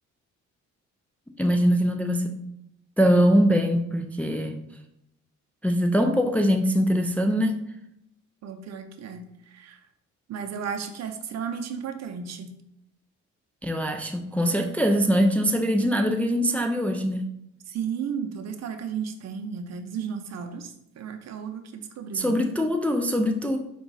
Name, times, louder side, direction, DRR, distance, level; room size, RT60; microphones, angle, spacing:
voice 1, 1.4-2.3 3.0-4.6 5.6-7.6 13.6-17.2 22.1-23.6, equal, 5° left, 4 dB, 0.3 m, -22 dB
voice 2, 8.4-9.8 10.3-12.5 17.7-22.4, right 7 dB, 60° right, 6 dB, 0.6 m, -34 dB
4.8 x 2.3 x 3.9 m, 0.79 s
cardioid pair, 90°, 30 cm